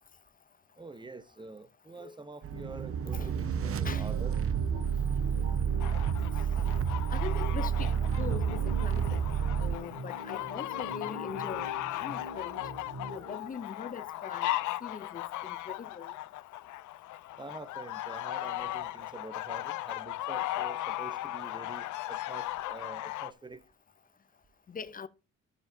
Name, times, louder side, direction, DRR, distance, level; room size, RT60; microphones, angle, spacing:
voice 1, 0.8-4.3 17.4-23.6, right 3 dB, 15° right, 0.9 m, -46 dB
sound 1, 2.4-9.8, right 8 dB, 50° right, 0.7 m, -30 dB
sound 2, 2.5-13.5, equal, 65° right, 4.1 m, -43 dB
voice 2, 3.6-4.1 7.1-9.2 9.6-12.6 13.1-14.5 14.8-16.1 24.7-25.1, left 6 dB, 30° left, 0.6 m, -42 dB
sound 3, 5.8-23.3, left 15 dB, 80° left, 0.6 m, -37 dB
12.0 x 7.0 x 2.7 m
cardioid pair, 90°, 30 cm